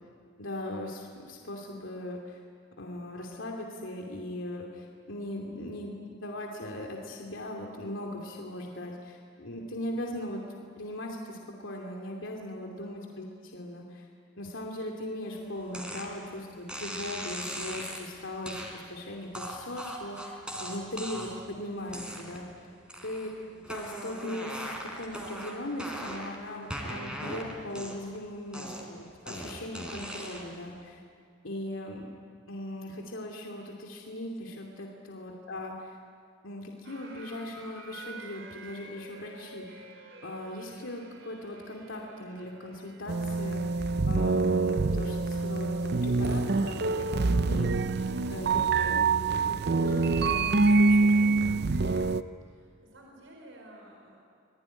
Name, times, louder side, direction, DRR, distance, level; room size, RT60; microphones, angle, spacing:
voice 1, 0.4-2.4 2.8-14.1 14.4-22.7 23.0-23.3 23.7-31.0 31.4-32.1 32.5-36.0 36.4-39.9 40.2-51.6, left 1 dB, 85° left, 0 dB, 2.7 m, -39 dB
voice 2, 12.8-13.3 23.3-23.7 35.2-35.4 52.4-54.2, right 1 dB, 90° right, 0 dB, 5.0 m, -54 dB
sound 1, 15.7-16.1 16.7-18.1 18.5-18.7 19.3-21.5 21.9-22.5 22.9-23.3 23.6-26.4 26.7-28.2 28.5-30.6, equal, 5° right, 4.0 m, -39 dB
sound 2, 36.8-52.1, right 2 dB, 75° right, 3.2 m, -51 dB
sound 3, 43.1-52.2, right 3 dB, 55° right, 0.6 m, -25 dB
26.5 x 20.5 x 9.9 m, 2.2 s
head